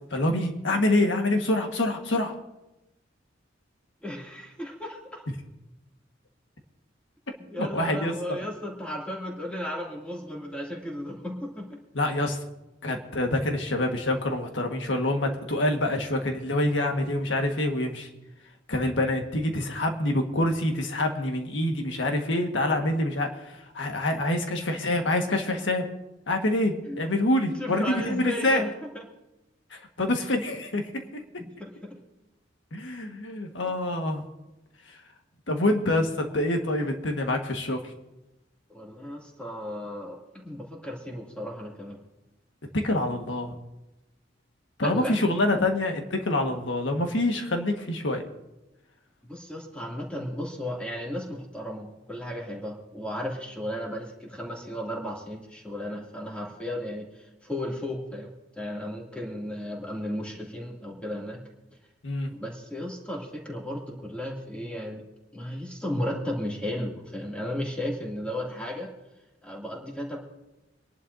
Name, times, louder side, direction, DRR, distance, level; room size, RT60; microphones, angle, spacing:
voice 1, 0.1-2.3 7.6-8.1 11.9-12.4 12.8-18.1 18.7-25.9 26.3-28.7 29.7-31.2 32.7-34.2 34.9-35.0 35.5-37.9 42.7-43.6 44.8-48.2 62.0-62.3, left 1 dB, 90° left, 4 dB, 1.6 m, -26 dB
voice 2, 4.0-5.2 7.5-11.8 26.9-27.1 27.6-28.7 28.9-29.1 31.4-31.7 38.7-42.0 44.8-45.1 49.2-57.1 57.4-61.4 62.3-65.0 65.3-68.9 69.4-70.2, left 1 dB, 5° left, -2 dB, 2.6 m, -34 dB
26.0 x 11.5 x 2.7 m, 0.98 s
head